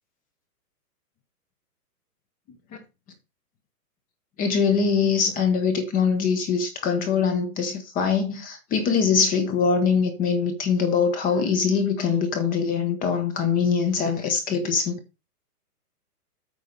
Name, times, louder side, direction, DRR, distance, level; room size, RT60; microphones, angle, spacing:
voice 1, 4.4-15.0, left 6 dB, 15° left, 1.0 m, -23 dB
8.8 x 4.6 x 5.3 m
hypercardioid pair, 145°, 47 cm